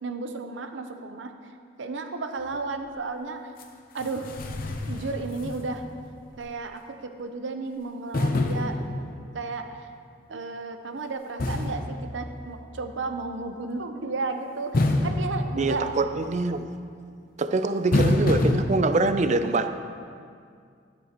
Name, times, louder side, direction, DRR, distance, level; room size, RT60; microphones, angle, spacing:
voice 1, 0.0-1.5 1.8-3.4 3.9-4.3 4.9-5.8 6.4-9.1 9.3-9.9 10.3-15.9, right 3 dB, 90° right, 6 dB, 0.7 m, -33 dB
sound 1, 3.6-3.7 4.0-6.0 6.4-6.5 8.1-9.5 11.4-12.8 14.7-16.3 17.9-18.6, left 2 dB, 50° left, 0.7 m, -27 dB
voice 2, 15.6-16.6 17.4-19.7, right 3 dB, 40° right, 9 dB, 0.4 m, -24 dB
12.0 x 10.5 x 3.0 m, 2.2 s
head